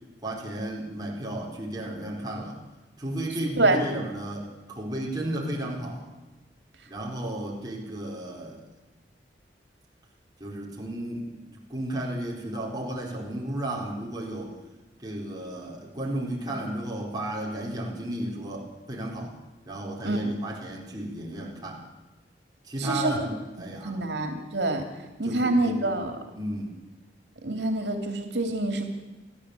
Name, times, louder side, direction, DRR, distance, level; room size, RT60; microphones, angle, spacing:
voice 1, 0.2-2.6 3.0-6.1 6.9-8.6 10.4-14.5 15.0-19.3 19.6-21.8 22.6-24.1 25.2-26.0 26.3-26.7, right 1 dB, 20° right, -2 dB, 4.6 m, -33 dB
voice 2, 22.8-23.1 23.8-24.8 25.2-26.1 27.4-28.9, right 2 dB, 85° right, 6 dB, 2.7 m, -26 dB
29.5 x 11.5 x 8.3 m, 1.2 s
head